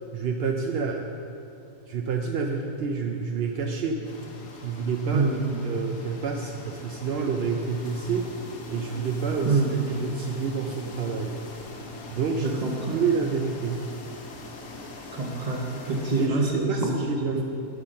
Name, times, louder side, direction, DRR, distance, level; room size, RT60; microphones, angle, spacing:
voice 1, 0.1-1.2 1.9-4.0 4.6-5.3 5.6-8.3 8.7-9.6 10.0-11.4 12.1-12.6 12.9-13.8 16.2-17.4, right 5 dB, 65° right, 2 dB, 0.6 m, -28 dB
sound 1, 4.0-16.3, left 2 dB, 65° left, 1.5 m, -42 dB
voice 2, 5.1-5.7 9.4-9.9 12.4-13.0 15.1-17.1 17.3-17.4, right 3 dB, 30° right, 1 dB, 1.1 m, -26 dB
11.0 x 5.6 x 6.4 m, 2.8 s
omnidirectional pair, 1.6 m